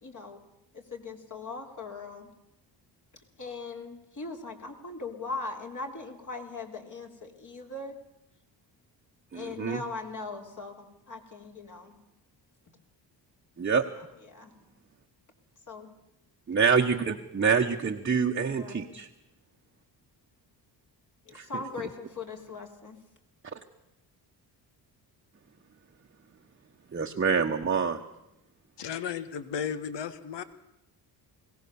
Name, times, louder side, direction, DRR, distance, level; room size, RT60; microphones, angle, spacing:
voice 1, 0.0-0.4 0.7-2.3 3.4-8.0 9.3-12.0 14.2-14.5 15.7-15.9 18.5-19.0 21.3-23.0, left 3 dB, 45° left, 2 dB, 3.5 m, -40 dB
voice 2, 9.3-9.8 13.6-13.8 16.5-19.1 21.3-21.5 26.9-28.0, right 6 dB, 25° right, 2 dB, 1.1 m, -26 dB
voice 3, 28.8-30.4, left 7 dB, 70° left, 13 dB, 1.5 m, -34 dB
21.5 x 17.5 x 7.0 m, 0.89 s
cardioid pair, 95°, 44 cm